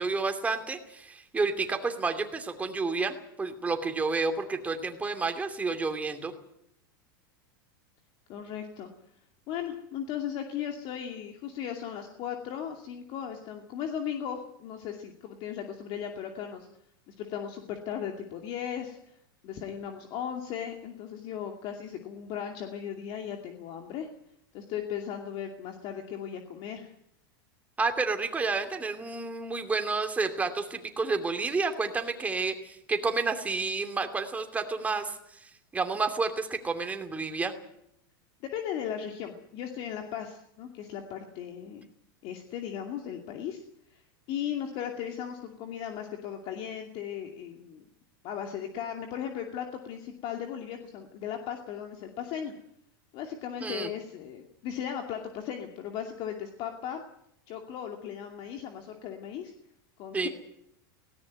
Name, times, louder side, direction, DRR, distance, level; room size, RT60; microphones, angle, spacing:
voice 1, 0.0-6.3 27.8-37.5 53.6-53.9 60.1-60.3, right 4 dB, 10° right, 6 dB, 2.7 m, -30 dB
voice 2, 8.3-8.9 9.5-16.7 17.1-19.1 19.4-24.1 24.5-26.9 38.4-41.9 42.2-43.6 43.9-44.0 44.3-47.8 48.2-52.5 53.1-57.0 57.5-59.5 60.0-60.3, left 9 dB, 45° left, 4 dB, 2.5 m, -37 dB
18.5 x 18.0 x 9.4 m, 0.76 s
supercardioid pair, 135°, 12 cm